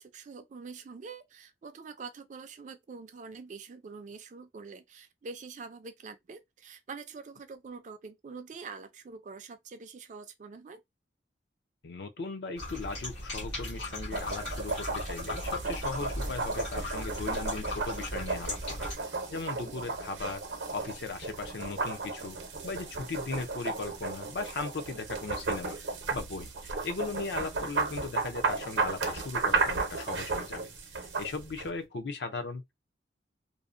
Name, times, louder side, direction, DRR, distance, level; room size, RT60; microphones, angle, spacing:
voice 1, 0.0-10.8 19.5-19.8, right 4 dB, 40° right, 0.3 m, -45 dB
voice 2, 11.8-18.9 19.3-22.4 22.6-25.8 26.1-30.6 31.0-32.7, left 3 dB, 65° left, 0.5 m, -38 dB
sound 1, 12.6-19.0, left 1 dB, 85° left, 1.3 m, -38 dB
sound 2, 14.1-31.7, right 4 dB, 75° right, 0.7 m, -34 dB
2.6 x 2.0 x 2.4 m
head